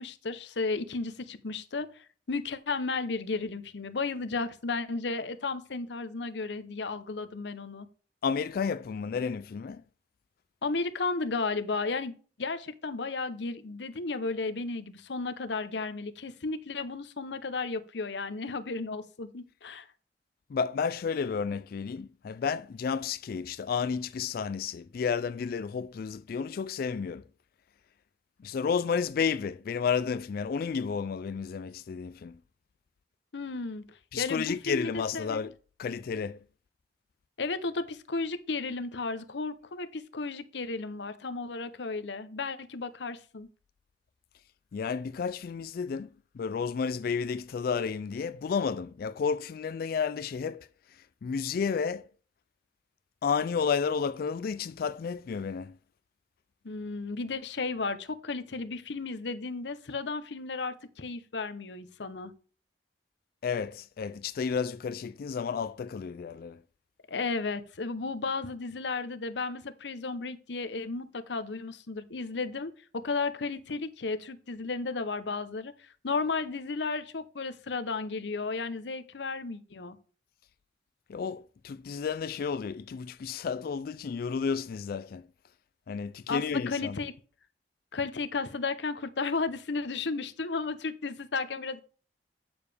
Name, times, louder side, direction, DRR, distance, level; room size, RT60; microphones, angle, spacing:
voice 1, 0.0-7.9 10.6-19.9 33.3-33.8 34.2-35.4 37.4-43.5 56.6-62.3 67.1-80.0 86.3-87.1 87.9-91.8, left 4 dB, 75° left, 0.7 m, -34 dB
voice 2, 8.2-9.8 20.5-27.2 28.4-32.4 34.1-35.5 35.8-36.4 44.7-46.1 46.3-50.7 51.2-52.1 53.2-55.8 63.4-66.6 81.1-85.2 85.9-87.0, left 6 dB, 55° left, 0.3 m, -31 dB
8.8 x 6.9 x 3.4 m
head